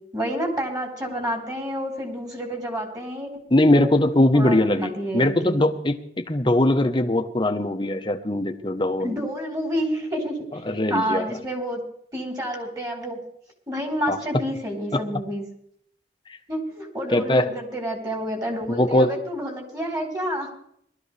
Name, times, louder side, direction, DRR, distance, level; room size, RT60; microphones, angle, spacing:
voice 1, 0.0-3.3 3.7-4.0 4.3-5.6 9.0-11.8 12.1-13.2 13.7-15.5 16.5-20.5, equal, 20° right, 1 dB, 4.0 m, -29 dB
voice 2, 3.5-9.1 10.6-11.4 14.1-14.2 14.9-15.0 17.1-17.5 18.7-19.2, left 1 dB, 25° left, 7 dB, 1.0 m, -21 dB
20.5 x 13.5 x 3.3 m, 0.68 s
head